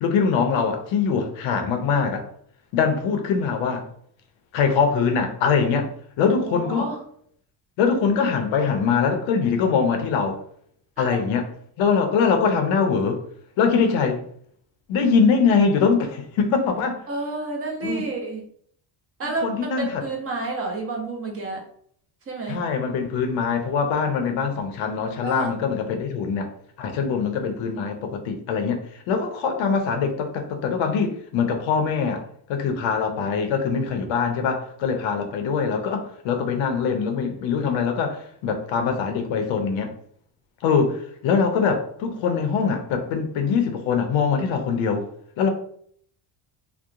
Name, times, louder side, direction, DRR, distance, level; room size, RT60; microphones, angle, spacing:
voice 1, 0.0-2.3 2.7-3.9 4.5-5.9 6.2-6.9 7.8-10.4 11.0-11.5 11.8-13.2 13.6-14.2 14.9-17.0 17.8-18.0 19.4-20.0 22.5-26.5 26.8-32.2 32.5-39.9 40.6-45.1 45.4-45.5, left 5 dB, 70° left, 0.6 m, -23 dB
voice 2, 6.5-7.0 11.0-11.2 17.1-18.4 19.2-21.6 22.3-22.6 25.2-25.5 33.1-33.2, right 3 dB, 30° right, 0.6 m, -30 dB
2.8 x 2.0 x 2.4 m
cardioid pair, 130°, 49 cm